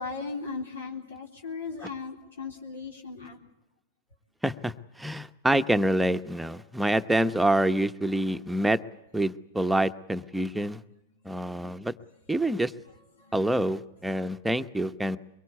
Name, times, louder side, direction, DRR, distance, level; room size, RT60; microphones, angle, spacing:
voice 1, 0.0-3.4 13.2-13.4, left 4 dB, 80° left, 1 dB, 3.6 m, -37 dB
voice 2, 4.4-4.7 5.0-8.8 9.1-10.8 11.2-11.9 12.3-12.7 13.3-15.2, right 1 dB, 5° right, 9 dB, 1.0 m, -26 dB
23.0 x 22.5 x 8.3 m, 0.88 s
hypercardioid pair, 105°, 0 cm